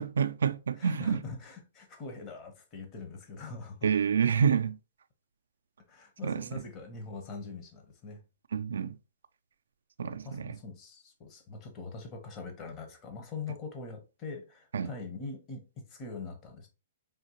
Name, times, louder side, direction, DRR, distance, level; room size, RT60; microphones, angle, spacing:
voice 1, 0.0-1.2 3.8-4.8 6.2-6.6 8.5-8.9 10.0-10.6 14.7-14.9, right 7 dB, 90° right, 0.3 m, -28 dB
voice 2, 0.8-3.9 5.9-8.2 10.0-15.6 15.9-16.7, left 4 dB, 25° left, 0.9 m, -43 dB
5.0 x 2.8 x 2.9 m
hypercardioid pair, 155°, 0 cm